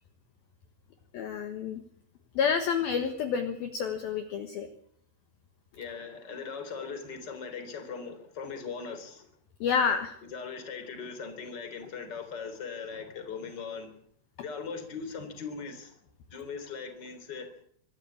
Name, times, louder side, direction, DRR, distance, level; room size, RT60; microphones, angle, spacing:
voice 1, 1.1-1.8 2.4-4.7 9.6-10.1, left 6 dB, 65° left, 7 dB, 2.8 m, -29 dB
voice 2, 5.8-9.3 10.3-13.9 14.4-16.0 16.3-17.5, left 5 dB, 25° left, 8 dB, 3.3 m, -39 dB
24.5 x 14.0 x 8.6 m, 0.65 s
omnidirectional pair, 5.5 m